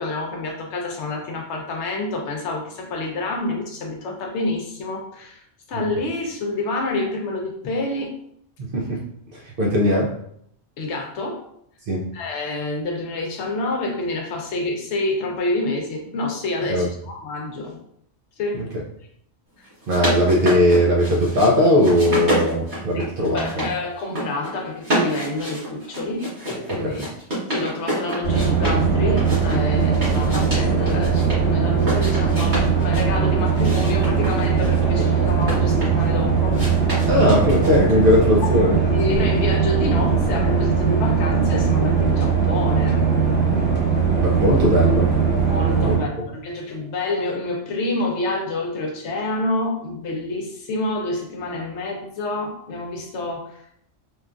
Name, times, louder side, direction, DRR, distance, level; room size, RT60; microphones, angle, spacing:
voice 1, 0.0-5.4 5.7-8.1 10.8-11.4 12.1-17.8 18.4-18.6 22.9-23.1 23.3-27.1 27.5-36.6 38.4-38.5 38.9-43.0 45.5-53.8, left 2 dB, 70° left, 1 dB, 0.9 m, -28 dB
voice 2, 8.6-9.0 9.6-10.1 11.9-12.1 16.7-16.9 18.5-18.6 19.9-23.7 26.8-27.0 37.1-38.8 44.1-45.1 45.8-46.0, left 1 dB, 60° right, -2 dB, 0.6 m, -19 dB
sound 1, 19.6-21.5 21.8-23.7 24.0-24.5 24.8-28.8 29.2-31.4 31.8-33.1 33.6-36.1 36.5-38.0, right 1 dB, 40° right, 1.3 m, -28 dB
sound 2, 28.2-46.0, right 6 dB, 10° left, 1.0 m, -20 dB
3.0 x 2.4 x 2.3 m, 0.69 s
omnidirectional pair, 1.3 m